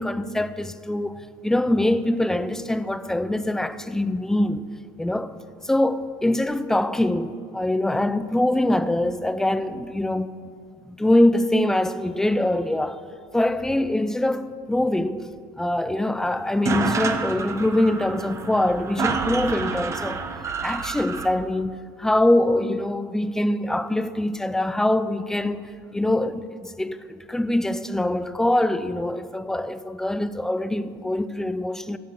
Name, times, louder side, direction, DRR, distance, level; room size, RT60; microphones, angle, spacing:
voice 1, 0.0-4.7 5.0-5.3 5.6-10.3 10.9-13.0 13.3-15.3 15.6-20.2 20.6-32.0, left 1 dB, 5° left, 0.5 m, -23 dB
sound 1, 16.2-16.3 16.5-21.3, right 5 dB, 25° right, 1.0 m, -28 dB
16.0 x 6.5 x 8.3 m
cardioid pair, 125°, 11 cm